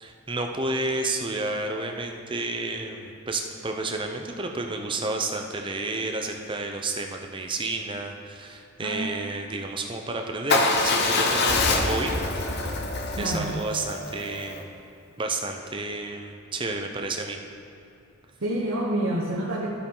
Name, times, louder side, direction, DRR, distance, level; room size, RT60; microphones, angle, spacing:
voice 1, 0.0-12.1 12.5-12.8 13.2-14.7 15.2-17.4, right 2 dB, 20° right, 3 dB, 0.7 m, -31 dB
Motorcycle / Engine starting / Idling, 10.5-14.6, left 3 dB, 50° left, 0.8 m, -25 dB
voice 2, 13.2-13.5 18.4-19.7, right 1 dB, 80° right, -4 dB, 1.2 m, -27 dB
12.5 x 8.2 x 3.9 m, 2.6 s
head